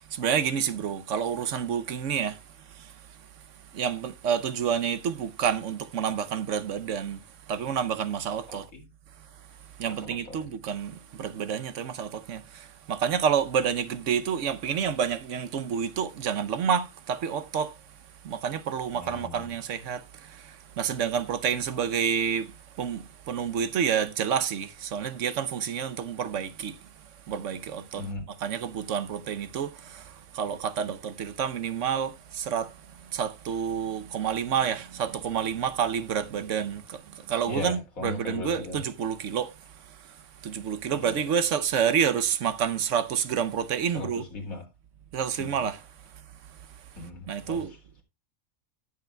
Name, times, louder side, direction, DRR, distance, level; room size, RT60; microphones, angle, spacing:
voice 1, 0.1-2.4 2.7-3.3 3.7-8.7 9.8-17.8 18.2-26.9 27.3-28.0 28.4-44.2 45.1-45.8 47.3-47.7, right 7 dB, 65° right, 1.0 m, -29 dB
voice 2, 8.5-8.9 9.9-10.5 18.9-19.5 28.0-28.2 37.5-38.9 40.9-41.2 43.9-44.7 45.4-45.7 47.0-48.0, left 2 dB, 90° left, 2.8 m, -38 dB
17.5 x 6.6 x 2.2 m
omnidirectional pair, 1.4 m